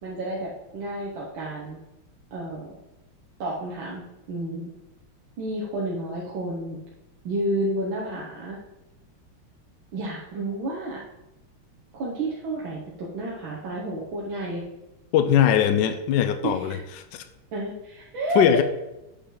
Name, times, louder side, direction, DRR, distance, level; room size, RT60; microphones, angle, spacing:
voice 1, 0.0-1.8 2.3-2.8 3.4-4.0 4.3-4.7 5.4-6.8 7.2-8.6 9.9-11.0 11.9-14.6 16.4-16.8 17.5-18.4, right 2 dB, 65° right, -4 dB, 1.9 m, -30 dB
voice 2, 15.1-16.8 17.1-17.2 18.3-18.6, left 10 dB, 70° left, 9 dB, 1.1 m, -20 dB
8.2 x 5.5 x 3.8 m, 0.95 s
omnidirectional pair, 2.4 m